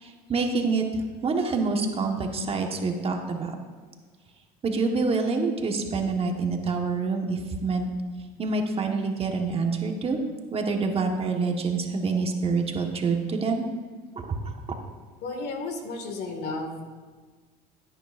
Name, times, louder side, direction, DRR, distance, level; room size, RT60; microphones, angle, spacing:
voice 1, 0.0-3.5 4.6-7.9 8.4-10.2 10.5-13.7 14.2-14.8, right 4 dB, 30° right, 3 dB, 1.3 m, -27 dB
voice 2, 15.2-16.8, left 3 dB, 55° left, 4 dB, 1.9 m, -33 dB
15.5 x 9.1 x 2.5 m, 1.4 s
supercardioid pair, 95°, 19 cm